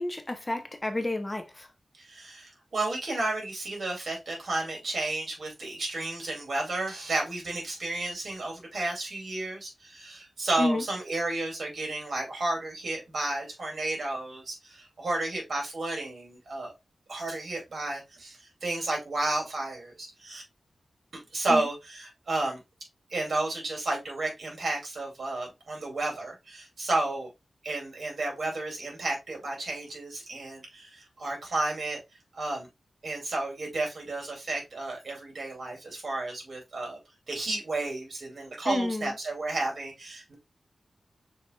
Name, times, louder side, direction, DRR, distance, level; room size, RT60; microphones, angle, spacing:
voice 1, 0.0-1.7 10.6-10.8 21.5-21.6 38.7-39.1, left 2 dB, 25° left, 0.8 m, -30 dB
voice 2, 1.9-16.7 17.1-20.4 21.1-22.6 23.1-27.3 27.6-32.0 32.3-32.7 33.0-37.0 37.3-40.3, right 2 dB, 70° right, 2.5 m, -32 dB
6.5 x 2.9 x 2.4 m
cardioid pair, 60°, 0 cm